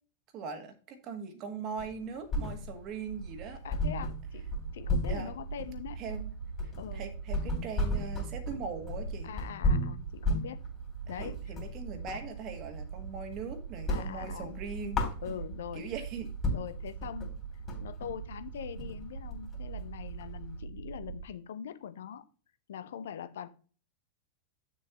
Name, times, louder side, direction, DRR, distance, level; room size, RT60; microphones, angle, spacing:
voice 1, 0.3-3.6 5.1-5.3 6.0-6.3 6.6-9.3 11.2-15.0 15.7-16.3, right 5 dB, 35° right, 6 dB, 1.6 m, -40 dB
sound 1, 1.8-3.0 3.3-3.4 3.7-12.3 12.7-13.4 13.7-15.7 16.1-16.2 16.4-20.6, left 1 dB, 25° left, 3.2 m, -34 dB
sound 2, 3.0-21.3, right 7 dB, 65° right, 0.5 m, -42 dB
voice 2, 3.6-6.0 6.8-7.0 9.2-10.6 11.1-11.4 13.9-14.6 15.2-15.9 16.5-17.4 17.8-22.2 22.7-23.5, left 9 dB, 60° left, 12 dB, 0.7 m, -42 dB
8.7 x 7.0 x 2.9 m, 0.37 s
figure-of-eight pair, 90°, 0 cm